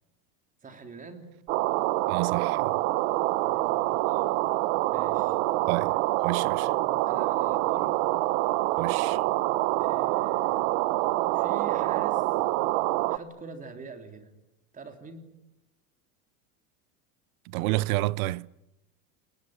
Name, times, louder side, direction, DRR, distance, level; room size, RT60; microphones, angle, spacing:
voice 1, 0.6-1.3 3.3-4.2 4.9-5.4 6.4-8.0 9.8-10.6 11.3-12.2 13.1-14.3 14.7-15.3, right 4 dB, 20° right, 3.3 m, -45 dB
sound 1, 1.5-13.2, right 18 dB, 60° right, 1.1 m, -26 dB
voice 2, 2.1-2.8 5.7-5.9 6.2-6.7 8.8-9.2 17.5-18.5, right 19 dB, 75° right, 0.9 m, -29 dB
29.5 x 19.5 x 9.4 m
supercardioid pair, 150°, 43 cm